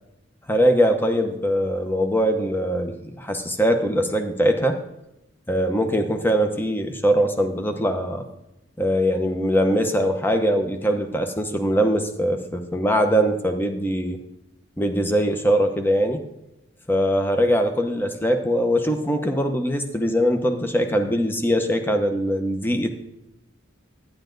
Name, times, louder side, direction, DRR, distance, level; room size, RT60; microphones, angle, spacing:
voice 1, 0.5-4.8 5.5-8.3 8.8-14.2 14.8-16.2 16.9-22.9, equal, 10° left, 6 dB, 0.9 m, -22 dB
11.5 x 10.5 x 3.9 m, 0.91 s
head